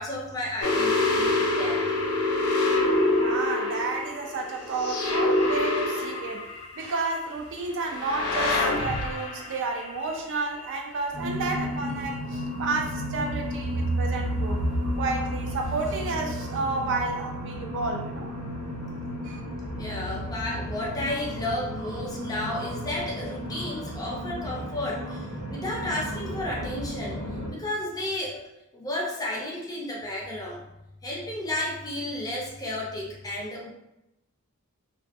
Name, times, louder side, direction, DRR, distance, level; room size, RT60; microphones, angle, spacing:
voice 1, 0.0-1.8 19.8-28.4 28.7-30.6 31.0-33.7, left 1 dB, 15° left, -3 dB, 0.5 m, -32 dB
sound 1, 0.6-6.9 7.9-10.6, left 2 dB, 85° left, 0.6 m, -26 dB
voice 2, 3.2-6.5 6.8-14.6 15.0-18.3 19.2-19.4, right 3 dB, 55° right, 3 dB, 0.3 m, -31 dB
sound 2, 11.1-27.5, equal, 75° right, 1.2 m, -32 dB
2.4 x 2.2 x 2.5 m, 0.89 s
head